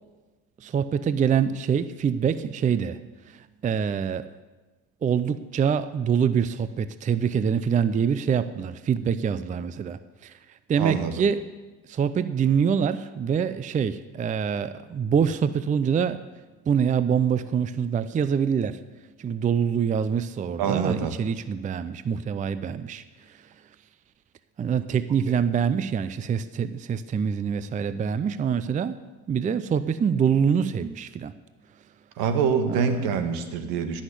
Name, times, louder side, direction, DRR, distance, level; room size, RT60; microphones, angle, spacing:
voice 1, 0.6-3.0 3.3-4.3 5.0-10.3 10.7-11.5 11.9-16.2 16.7-18.8 19.2-23.4 24.6-28.9 29.3-31.3 32.7-32.9, right 7 dB, 20° right, 13 dB, 0.5 m, -25 dB
voice 2, 10.8-11.1 20.6-21.1 32.2-34.0, right 6 dB, 70° right, 8 dB, 1.6 m, -25 dB
16.0 x 6.4 x 8.2 m, 1.2 s
supercardioid pair, 90°, 36 cm